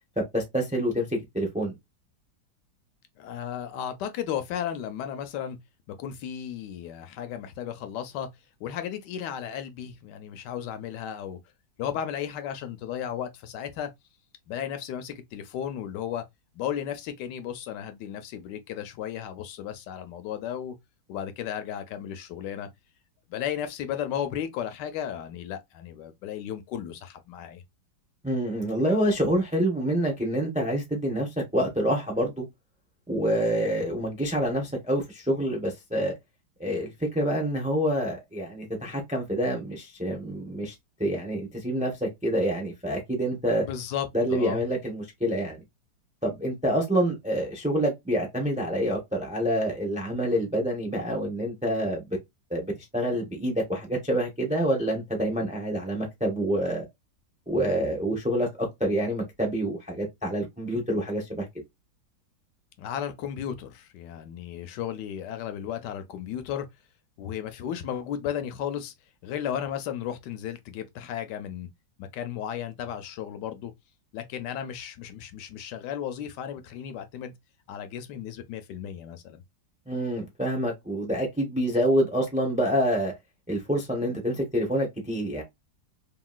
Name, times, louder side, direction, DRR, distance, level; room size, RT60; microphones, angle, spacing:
voice 1, 0.3-1.7 28.2-32.5 33.1-36.1 36.6-40.7 41.0-43.6 44.1-45.6 46.2-52.0 52.5-56.8 57.5-61.5 79.9-83.1 83.5-85.4, equal, 10° right, 0.4 m, -27 dB
voice 2, 3.2-5.6 5.9-8.3 8.6-11.4 11.8-13.9 14.5-16.2 16.5-20.7 21.1-22.7 23.3-27.6 43.6-44.6 62.8-66.7 67.2-68.9 69.2-71.7 72.0-73.7 74.1-77.3 77.7-79.4, left 9 dB, 75° left, 1.2 m, -34 dB
2.9 x 2.8 x 2.3 m
omnidirectional pair, 1.9 m